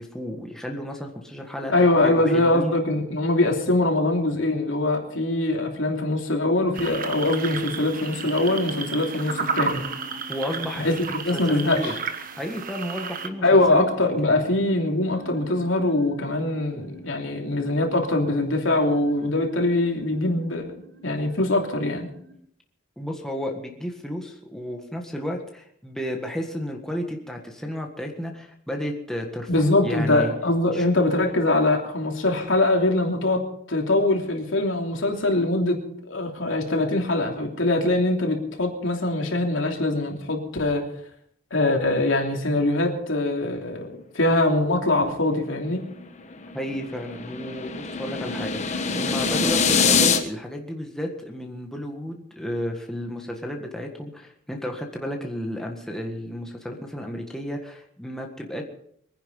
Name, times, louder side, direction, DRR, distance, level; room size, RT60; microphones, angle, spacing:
voice 1, 0.0-1.7 2.0-2.8 10.3-11.0 11.3-11.9 12.4-13.8 23.0-29.5 29.8-30.3 30.7-30.9 46.5-58.6, equal, 5° left, 1 dB, 1.7 m, -32 dB
voice 2, 1.7-9.9 10.8-11.9 13.4-20.6 21.0-22.1 29.5-35.8 36.0-40.8 41.5-45.8, left 2 dB, 75° left, 2 dB, 3.1 m, -23 dB
sound 1, 6.1-22.3, equal, 60° right, 4.0 m, -46 dB
sound 2, 6.7-13.3, right 5 dB, 45° right, 1.3 m, -32 dB
sound 3, 45.9-50.2, left 5 dB, 35° left, 1.4 m, -24 dB
23.0 x 10.0 x 5.5 m, 0.70 s
head